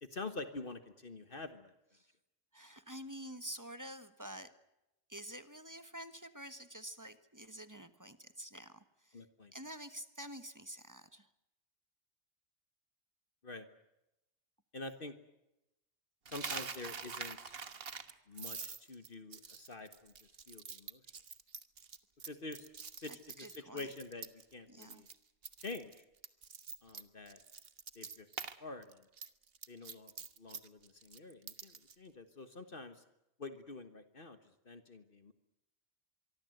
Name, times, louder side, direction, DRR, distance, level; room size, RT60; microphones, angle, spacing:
voice 1, 0.0-1.7 9.1-9.5 13.4-13.7 14.7-15.1 16.3-17.5 18.3-20.1 20.5-21.0 22.3-22.7 23.0-25.1 25.6-26.0 26.8-27.4 27.9-28.3 28.6-29.1 29.7-30.1 30.4-33.0 33.4-34.4 34.6-35.3, left 3 dB, 55° left, 9 dB, 1.6 m, -47 dB
voice 2, 2.5-4.5 5.1-9.2 9.5-11.3 23.0-23.9 24.7-25.0, right 1 dB, 15° right, 11 dB, 1.3 m, -48 dB
Coin (dropping), 16.3-24.5 24.8-25.1 25.4-28.6 28.8-32.0, right 5 dB, 60° right, 1.5 m, -46 dB
24.5 x 23.5 x 7.9 m, 0.90 s
omnidirectional pair, 1.1 m